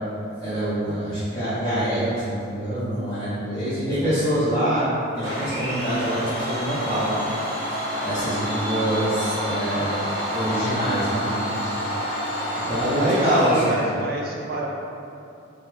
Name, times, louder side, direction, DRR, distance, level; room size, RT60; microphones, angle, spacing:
voice 1, 0.4-4.8 5.1-7.2 8.0-10.0 10.3-11.7 12.7-13.8, right 1 dB, 20° left, -14 dB, 0.6 m, -25 dB
Domestic sounds home sounds, 5.2-13.9, equal, 15° right, 0.8 m, -28 dB
voice 2, 12.9-14.7, right 2 dB, 45° right, -2 dB, 0.4 m, -29 dB
2.7 x 2.1 x 3.2 m, 2.7 s
head